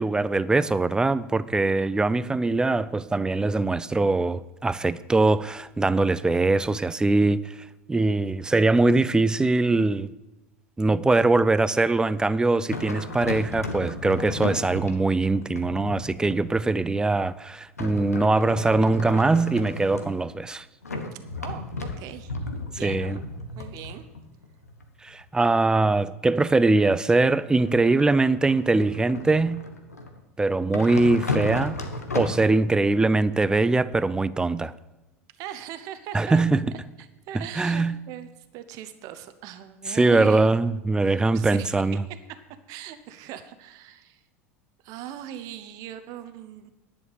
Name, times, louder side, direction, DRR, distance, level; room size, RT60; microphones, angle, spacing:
voice 1, 0.0-7.5 7.9-10.1 10.8-20.6 22.8-23.2 25.0-29.6 30.4-31.8 32.1-34.7 36.1-36.7 37.6-38.0 39.9-42.0, right 3 dB, 10° right, 0.5 m, -22 dB
sound 1, 12.7-17.1 17.8-20.5 20.8-25.5 27.1-30.2 30.7-32.4, left 2 dB, 85° left, 1.2 m, -34 dB
voice 2, 21.1-22.3 22.7-23.2 23.6-24.0 35.4-36.5 37.0-40.5 41.0-41.7 42.7-44.2 44.8-46.7, right 11 dB, 50° right, 0.9 m, -40 dB
10.5 x 7.2 x 8.0 m
figure-of-eight pair, 80°, 8 cm